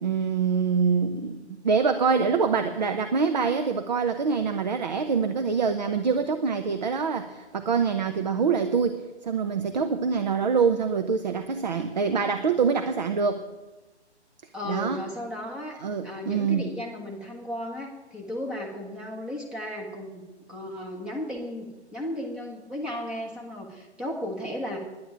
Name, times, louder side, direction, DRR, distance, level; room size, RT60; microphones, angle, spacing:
voice 1, 0.0-13.4 14.7-15.0 15.8-16.7, right 5 dB, 40° right, 8 dB, 0.9 m, -25 dB
voice 2, 14.5-15.7 16.0-20.2 20.5-24.8, left 1 dB, 5° right, -2 dB, 1.2 m, -35 dB
10.5 x 10.0 x 8.7 m, 1.1 s
figure-of-eight pair, 140°, 34 cm